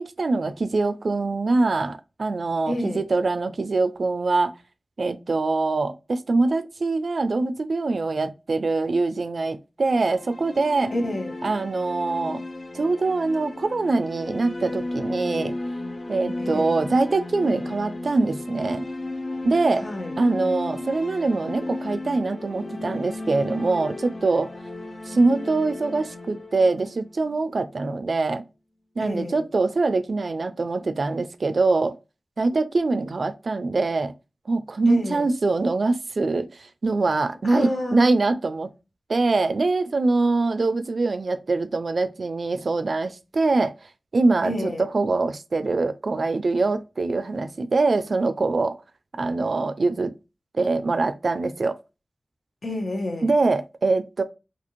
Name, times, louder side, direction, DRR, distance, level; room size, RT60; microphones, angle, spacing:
voice 1, 0.0-4.5 5.0-10.9 11.4-12.4 12.7-15.5 16.1-18.9 19.4-19.9 20.2-24.5 25.1-28.4 29.0-32.0 32.4-34.1 34.5-38.7 39.1-43.7 44.1-48.8 49.2-50.1 50.5-51.8 53.2-54.2, right 3 dB, 70° right, 0.3 m, -23 dB
voice 2, 2.7-3.0 10.9-11.4 16.4-16.8 19.8-20.1 29.0-29.4 34.9-35.3 37.4-38.1 44.4-44.8 52.6-53.3, left 1 dB, 65° left, 0.8 m, -29 dB
sound 1, 9.9-27.9, left 2 dB, 45° left, 0.4 m, -34 dB
2.7 x 2.5 x 2.9 m
wide cardioid pair, 60°, 0 cm